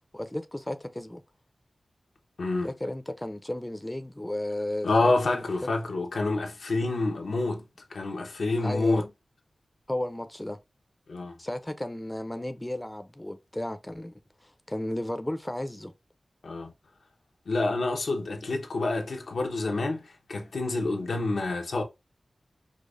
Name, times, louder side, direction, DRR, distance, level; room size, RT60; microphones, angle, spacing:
voice 1, 0.1-1.2 2.6-5.4 8.6-9.1 9.9-10.6 11.4-14.1 14.4-15.9, left 1 dB, 15° left, 0.4 m, -34 dB
voice 2, 2.4-2.7 4.8-7.6 7.9-9.1 11.1-11.3 16.4-16.7 17.5-21.8, left 2 dB, 90° left, 0.8 m, -28 dB
4.9 x 2.1 x 2.4 m
wide cardioid pair, 75°, 0 cm